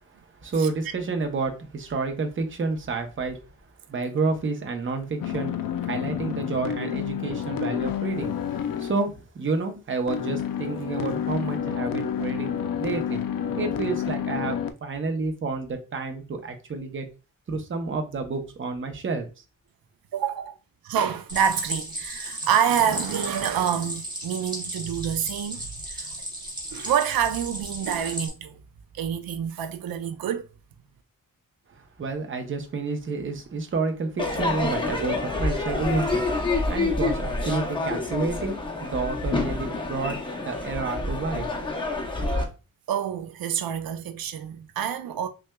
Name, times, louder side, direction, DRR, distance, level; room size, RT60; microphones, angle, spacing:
voice 1, 0.4-3.4 3.9-5.5 5.8-8.3 8.8-13.2 13.6-17.1 17.5-19.3 31.7-36.3 36.7-38.5 38.8-41.5, right 3 dB, 35° right, 0.7 m, -29 dB
sound 1, 5.2-9.1 10.1-14.7, left 8 dB, 75° left, 0.5 m, -29 dB
voice 2, 20.1-20.5 20.8-26.1 26.7-28.6 28.9-30.5 42.9-45.3, right 8 dB, 90° right, 0.5 m, -27 dB
Stream, 21.3-28.3, right 1 dB, 10° right, 1.0 m, -35 dB
Crowd / Fireworks, 34.2-42.4, left 2 dB, 15° left, 0.6 m, -27 dB
5.8 x 2.3 x 2.2 m
wide cardioid pair, 165°, 34 cm